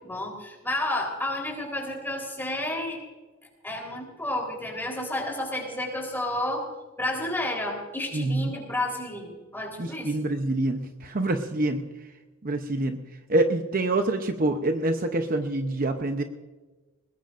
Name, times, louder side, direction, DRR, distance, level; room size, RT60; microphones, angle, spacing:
voice 1, 0.0-3.0 3.6-6.7 7.0-10.1, left 1 dB, 10° left, 0 dB, 3.8 m, -31 dB
voice 2, 8.1-8.5 9.8-11.8 12.4-13.0 13.3-16.2, right 2 dB, 40° right, 6 dB, 0.8 m, -26 dB
21.0 x 20.0 x 2.6 m, 1.2 s
head